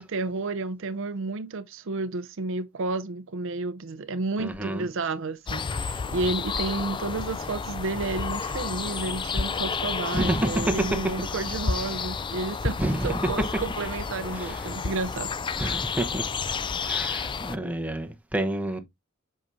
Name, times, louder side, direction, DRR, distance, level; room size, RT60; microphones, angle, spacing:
voice 1, 0.0-12.8 13.0-15.6, right 3 dB, 65° right, 0.6 m, -31 dB
voice 2, 4.4-4.9 10.1-11.0 12.8-13.3 14.3-14.6 15.6-16.3 16.8-18.8, right 1 dB, 5° right, 0.9 m, -28 dB
sound 1, 5.5-17.6, left 5 dB, 25° left, 0.4 m, -31 dB
7.9 x 5.7 x 2.6 m
head